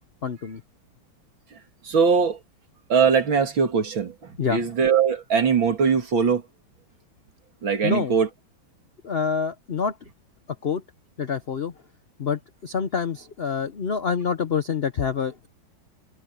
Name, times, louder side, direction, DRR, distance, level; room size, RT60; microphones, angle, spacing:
voice 1, 0.2-0.6 4.4-4.6 7.8-8.1 9.0-10.0 10.6-10.8 11.2-11.7 12.2-15.5, left 6 dB, 55° left, 0.6 m, -26 dB
voice 2, 1.8-2.4 2.9-6.4 7.6-8.3, right 6 dB, 70° right, 3.3 m, -21 dB
omnidirectional pair, 2.2 m